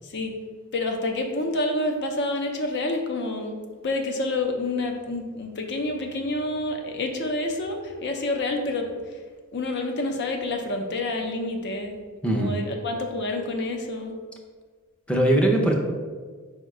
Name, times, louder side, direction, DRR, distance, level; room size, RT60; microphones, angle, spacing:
voice 1, 0.7-3.6 3.8-9.2 9.5-12.0 12.3-14.1, left 2 dB, 55° left, 4 dB, 0.6 m, -28 dB
voice 2, 12.2-12.6 15.1-15.7, right 1 dB, 5° left, 1 dB, 0.5 m, -20 dB
5.2 x 2.2 x 4.8 m, 1.5 s
head